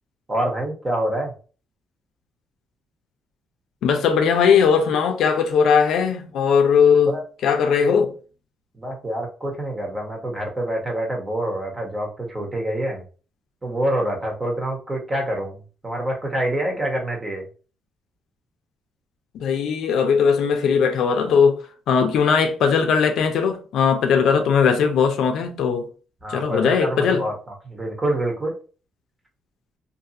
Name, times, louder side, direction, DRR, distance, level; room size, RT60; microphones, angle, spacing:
voice 1, 0.3-1.3 7.1-7.2 8.8-13.0 13.6-15.6 15.8-17.4 26.2-27.3 27.7-28.5, right 1 dB, 25° right, 1.1 m, -26 dB
voice 2, 3.8-7.2 7.4-8.1 19.3-21.6 21.9-25.9 26.3-27.2, left 6 dB, 80° left, 0.5 m, -19 dB
2.6 x 2.5 x 2.8 m
cardioid pair, 90°, 0 cm